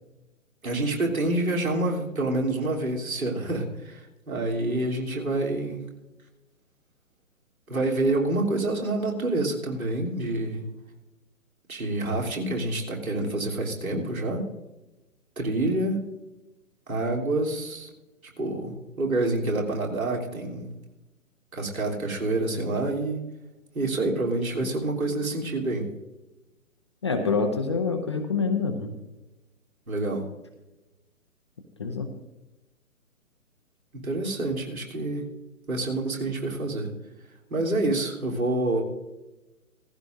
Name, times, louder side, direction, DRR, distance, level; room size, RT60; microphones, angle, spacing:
voice 1, 0.6-4.0 4.3-5.8 7.7-10.7 11.7-14.4 15.4-16.0 16.9-17.9 18.4-20.7 21.5-23.2 23.7-25.9 29.9-30.3 33.9-35.3 35.7-36.9 37.5-38.8, right 2 dB, 70° right, -1 dB, 3.3 m, -27 dB
voice 2, 27.0-28.9 31.8-32.1, left 4 dB, 20° left, 4 dB, 0.5 m, -26 dB
16.5 x 15.0 x 2.6 m, 1.0 s
figure-of-eight pair, 130°, 43 cm